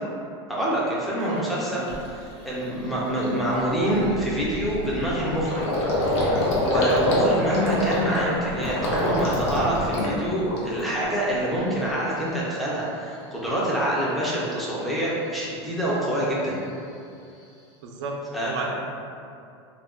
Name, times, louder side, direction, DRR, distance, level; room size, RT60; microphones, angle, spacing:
voice 1, 0.5-5.7 6.0-6.3 6.6-16.6 18.3-18.7, right 1 dB, ahead, -7 dB, 0.4 m, -26 dB
Gurgling, 1.3-1.4 1.9-2.1 2.5-2.7 2.9-11.0 11.3-12.0, left 1 dB, 80° left, 0.7 m, -26 dB
voice 2, 6.8-7.2 16.0-16.2 17.8-18.1 18.4-18.7, right 5 dB, 80° right, 0 dB, 0.5 m, -32 dB
2.4 x 2.2 x 3.4 m, 2.5 s
supercardioid pair, 160°, 15 cm